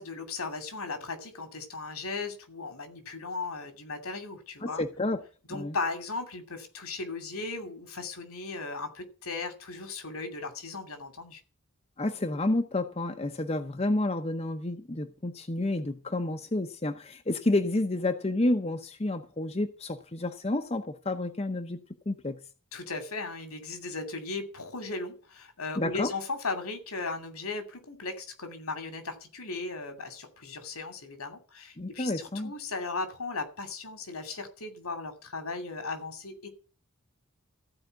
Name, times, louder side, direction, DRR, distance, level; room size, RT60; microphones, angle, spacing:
voice 1, 0.0-4.8 5.5-11.4 22.7-36.5, left 3 dB, 85° left, 2.7 m, -37 dB
voice 2, 4.6-5.2 5.5-5.8 12.0-21.8 22.1-22.4 25.8-26.1 31.8-32.5, left 2 dB, 30° left, 0.8 m, -30 dB
15.0 x 4.9 x 9.1 m
head